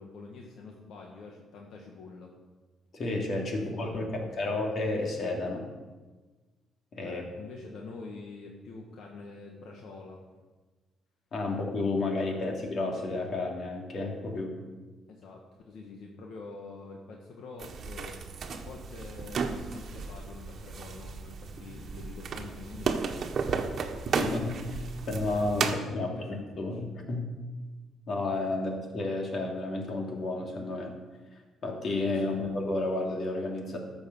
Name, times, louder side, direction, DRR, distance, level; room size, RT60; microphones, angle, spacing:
voice 1, 0.0-2.3 3.5-4.6 7.0-10.2 15.1-24.2 25.6-26.8 32.1-32.4, left 3 dB, 75° left, 0 dB, 1.6 m, -46 dB
voice 2, 2.9-5.6 6.9-7.2 11.3-14.6 24.2-24.8 25.1-27.3 28.1-30.9 31.6-33.8, left 2 dB, 55° left, 1 dB, 2.8 m, -31 dB
sound 1, 17.6-25.7, right 5 dB, 55° right, 1.3 m, -34 dB
12.0 x 7.1 x 6.9 m, 1.3 s
cardioid pair, 90°, 0 cm